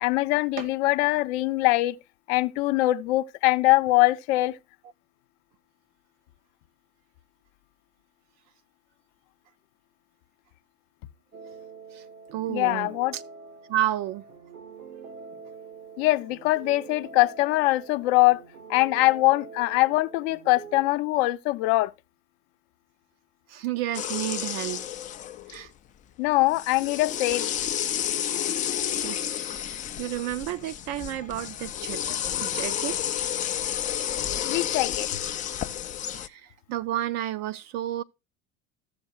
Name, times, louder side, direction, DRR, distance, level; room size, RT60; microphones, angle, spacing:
voice 1, 0.0-1.9 2.3-4.5 12.5-13.1 16.0-18.4 18.7-21.9 26.2-27.5 34.4-35.2, left 19 dB, 50° left, 0.7 m, -23 dB
sound 1, 11.3-21.0, right 5 dB, 85° right, 1.1 m, -45 dB
voice 2, 12.3-13.2 13.7-14.2 23.5-24.9 25.5-25.7 28.5-28.6 29.0-32.0 32.4-33.0 36.1-38.0, right 13 dB, 45° right, 0.5 m, -31 dB
sound 2, 23.9-25.7 26.5-36.3, left 10 dB, 20° left, 0.3 m, -31 dB
14.5 x 6.6 x 2.3 m
figure-of-eight pair, 75°, 41 cm